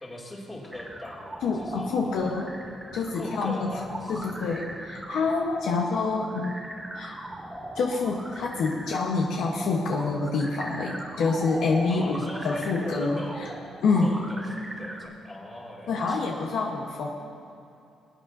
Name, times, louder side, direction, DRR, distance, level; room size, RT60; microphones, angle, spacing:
voice 1, 0.0-2.4 3.2-4.3 11.9-16.3, left 1 dB, 25° left, -4 dB, 2.5 m, -41 dB
sound 1, 0.7-15.1, right 1 dB, 15° right, 1.1 m, -40 dB
voice 2, 1.4-2.5 2.9-3.7 4.1-6.6 6.9-7.2 7.7-13.5 13.8-14.2 15.9-17.1, left 4 dB, 75° left, 0 dB, 1.0 m, -27 dB
20.5 x 9.0 x 2.7 m, 2.6 s
cardioid pair, 90°, 0 cm